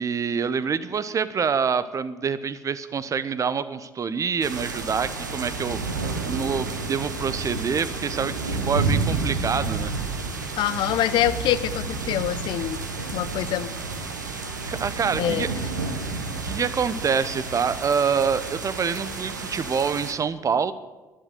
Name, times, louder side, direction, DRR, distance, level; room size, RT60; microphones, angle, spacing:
voice 1, 0.0-9.9 14.7-15.5 16.4-20.7, right 6 dB, 35° right, 14 dB, 0.9 m, -26 dB
sound 1, 4.4-20.1, right 3 dB, 85° right, 1.1 m, -30 dB
voice 2, 10.6-12.8 13.1-13.7 15.2-15.5, left 12 dB, 55° left, 14 dB, 0.7 m, -25 dB
11.5 x 11.0 x 8.0 m, 1.2 s
figure-of-eight pair, 50°, 10 cm